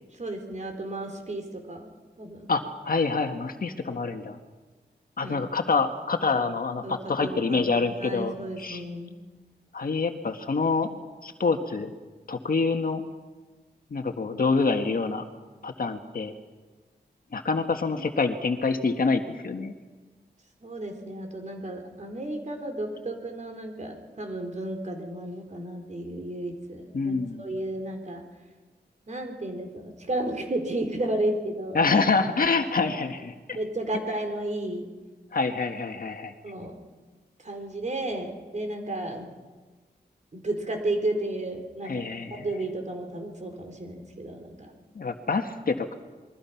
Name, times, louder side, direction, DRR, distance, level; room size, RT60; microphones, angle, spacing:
voice 1, 0.1-1.9 2.2-2.5 5.2-5.4 6.8-9.2 20.6-28.2 29.1-31.9 33.5-34.9 36.4-36.8 37.4-39.3 40.3-42.0 42.3-44.7, right 1 dB, 40° right, 3 dB, 4.1 m, -33 dB
voice 2, 2.5-4.4 5.2-6.8 7.1-8.8 9.7-10.9 11.2-12.0 12.3-13.0 13.9-15.2 15.6-16.3 17.3-19.7 26.9-27.4 31.8-33.3 35.3-36.3 41.8-42.5 45.0-45.9, left 4 dB, 55° left, 6 dB, 1.7 m, -26 dB
27.5 x 22.5 x 5.9 m, 1.3 s
wide cardioid pair, 140°, 18 cm